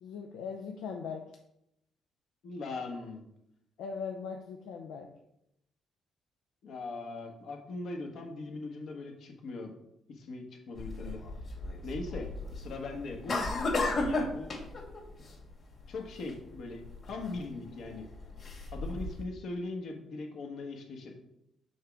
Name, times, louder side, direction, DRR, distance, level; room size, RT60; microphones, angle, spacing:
voice 1, 0.0-1.3 3.8-5.1, left 5 dB, 90° left, 3 dB, 0.6 m, -39 dB
voice 2, 2.4-3.2 6.6-9.7 10.1-11.2 11.8-12.3 12.5-14.5 15.9-18.1 18.7-21.1, left 3 dB, 70° left, 2 dB, 1.4 m, -40 dB
sound 1, 10.8-19.3, left 2 dB, 50° left, 2.4 m, -35 dB
6.4 x 3.5 x 5.9 m, 0.80 s
cardioid pair, 90°, 0 cm